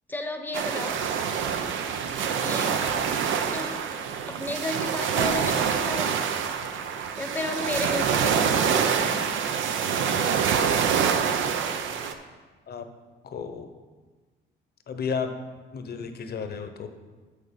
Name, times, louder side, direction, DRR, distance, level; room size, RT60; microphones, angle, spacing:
voice 1, 0.1-1.0 2.4-2.8 3.5-3.8 4.3-6.2 7.2-9.2, left 2 dB, 10° left, 6 dB, 0.8 m, -33 dB
sound 1, 0.5-12.1, right 7 dB, 75° right, 0.6 m, -26 dB
voice 2, 13.2-13.7 14.9-15.3 15.7-16.9, left 6 dB, 55° left, 7 dB, 0.8 m, -32 dB
6.6 x 6.5 x 5.2 m, 1.3 s
cardioid pair, 90°, 20 cm